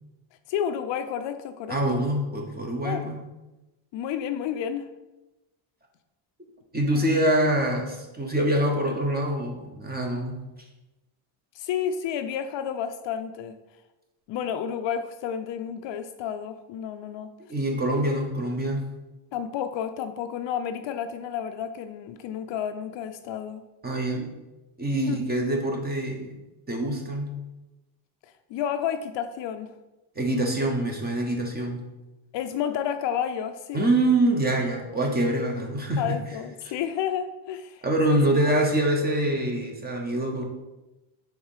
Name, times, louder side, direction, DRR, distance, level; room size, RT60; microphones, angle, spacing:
voice 1, 0.5-2.0 2.8-3.2 3.9-4.9 6.9-7.0 11.5-13.6 14.3-17.3 19.3-23.6 25.1-25.2 28.5-29.7 32.3-33.9 36.0-37.8 38.1-38.2, left 8 dB, 60° left, 9 dB, 0.5 m, -31 dB
voice 2, 1.7-3.2 6.7-10.4 17.5-18.9 23.8-24.3 24.8-26.4 26.7-27.3 30.2-31.8 33.7-36.2 37.8-40.4, right 1 dB, 20° right, 2 dB, 0.9 m, -25 dB
4.7 x 3.8 x 5.5 m, 1.0 s
cardioid pair, 150°, 50 cm